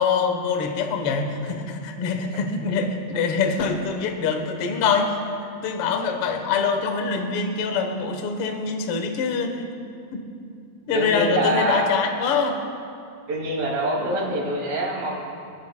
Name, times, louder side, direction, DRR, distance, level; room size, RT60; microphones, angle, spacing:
voice 1, 0.0-9.6 10.1-10.3 10.9-12.6, left 5 dB, 80° left, 4 dB, 1.2 m, -24 dB
voice 2, 10.8-11.9 13.3-15.2, right 1 dB, 75° right, -3 dB, 4.1 m, -25 dB
28.0 x 10.0 x 2.2 m, 2.5 s
omnidirectional pair, 4.2 m